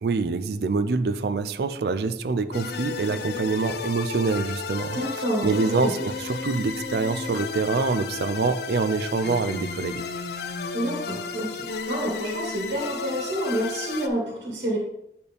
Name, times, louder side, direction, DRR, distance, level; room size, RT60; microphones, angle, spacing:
voice 1, 0.0-10.0, right 4 dB, 65° right, 11 dB, 0.4 m, -26 dB
sound 1, 2.5-14.1, left 4 dB, 65° left, 0.5 m, -33 dB
voice 2, 4.9-5.9 10.7-14.8, right 1 dB, 90° right, -2 dB, 1.7 m, -28 dB
8.6 x 4.3 x 3.4 m, 0.78 s
head